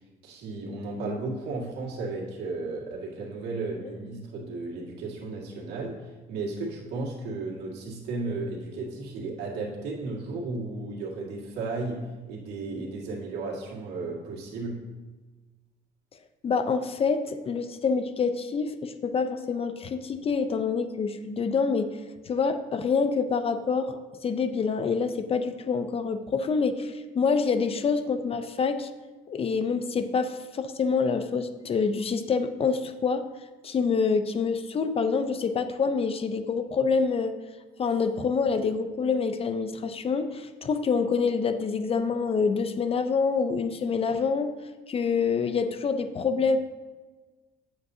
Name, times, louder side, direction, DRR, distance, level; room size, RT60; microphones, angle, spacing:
voice 1, 0.2-14.8, right 3 dB, 80° right, -3 dB, 2.0 m, -34 dB
voice 2, 16.4-22.0 22.3-28.9 29.3-33.3 33.6-37.3 37.8-44.5 44.9-46.6, left 5 dB, 35° left, 9 dB, 0.5 m, -26 dB
9.0 x 7.8 x 2.7 m, 1.3 s
cardioid pair, 110°, 17 cm